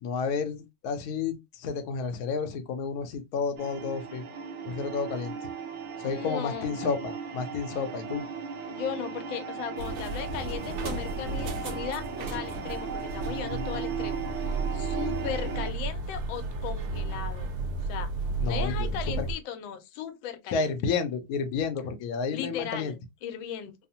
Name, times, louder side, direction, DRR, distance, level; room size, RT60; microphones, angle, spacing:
voice 1, 0.0-4.2 4.7-5.3 6.0-8.2 18.4-18.9 19.2-19.3 20.5-22.9, left 5 dB, 65° left, 0.9 m, -31 dB
sound 1, 3.6-15.7, right 6 dB, 80° right, 0.6 m, -37 dB
voice 2, 6.0-6.8 8.7-17.5 17.8-18.1 18.4-20.7 22.3-23.7, left 9 dB, 90° left, 1.4 m, -37 dB
sound 2, 9.8-19.3, right 3 dB, 65° right, 1.1 m, -33 dB
3.3 x 2.0 x 2.7 m
omnidirectional pair, 2.1 m